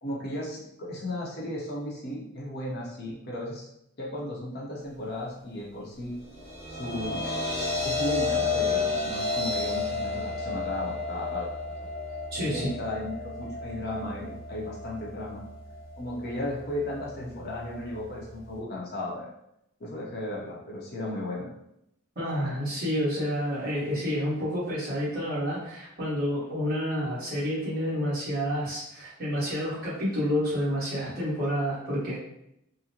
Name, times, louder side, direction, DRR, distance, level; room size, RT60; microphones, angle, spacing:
voice 1, 0.0-3.7 4.0-6.1 6.7-7.3 7.8-11.5 12.3-15.4 16.0-19.3 19.8-21.5, left 1 dB, 45° left, -3 dB, 0.8 m, -35 dB
sound 1, 6.2-18.6, left 4 dB, 5° left, 0.8 m, -32 dB
voice 2, 12.3-12.7 22.1-32.2, equal, 40° right, -8 dB, 1.3 m, -29 dB
3.7 x 2.1 x 2.9 m, 0.79 s
head